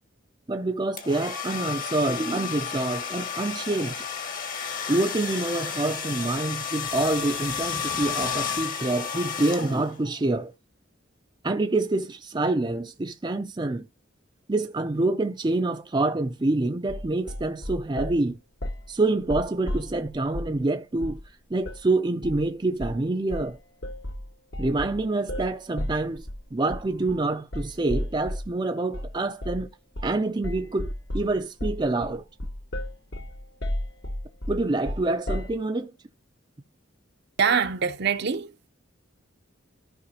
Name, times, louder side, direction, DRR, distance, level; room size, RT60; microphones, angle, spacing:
voice 1, 0.5-3.9 4.9-10.5 11.4-13.9 14.5-18.4 18.9-21.2 21.5-23.6 24.6-29.7 30.0-32.2 34.5-35.9, right 2 dB, 25° right, 0.5 m, -26 dB
sound 1, 1.0-10.1, left 7 dB, 45° left, 1.3 m, -32 dB
sound 2, 16.9-18.2 18.6-18.9 19.2-20.6 21.0-21.3 21.6-21.8 22.2-22.5 22.8-23.1 23.3-28.5 28.9-29.1 29.4-29.7 30.0-30.2 30.4-35.6, left 1 dB, 65° left, 1.4 m, -33 dB
voice 2, 37.4-38.7, right 6 dB, 55° right, 0.7 m, -24 dB
14.0 x 5.1 x 2.8 m
head